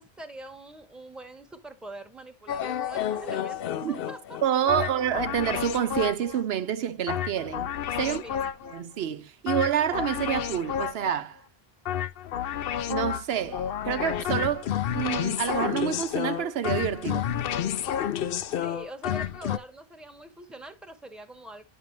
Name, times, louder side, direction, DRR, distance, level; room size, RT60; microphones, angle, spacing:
voice 1, 0.0-4.4 4.7-4.9 8.0-8.7 18.6-21.6, right 2 dB, ahead, 1.0 m, -44 dB
sound 1, 2.5-6.4 7.1-8.8 9.5-11.2 11.9-19.6, left 10 dB, 65° left, 0.7 m, -30 dB
voice 2, 4.4-7.7 8.0-8.2 8.7-11.4 12.9-17.3, right 9 dB, 80° right, 0.9 m, -28 dB
9.6 x 5.4 x 3.1 m
omnidirectional pair, 1.1 m